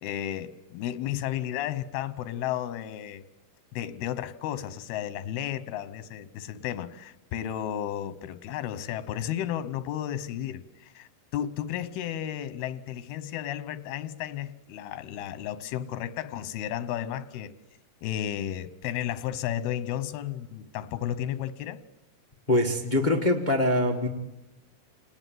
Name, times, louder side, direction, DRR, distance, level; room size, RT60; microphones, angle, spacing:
voice 1, 0.0-3.2 3.7-17.6 18.0-21.8, left 11 dB, 85° left, 3.0 m, -33 dB
voice 2, 22.5-24.1, left 1 dB, 50° left, 0.5 m, -23 dB
29.0 x 19.5 x 9.3 m
omnidirectional pair, 4.3 m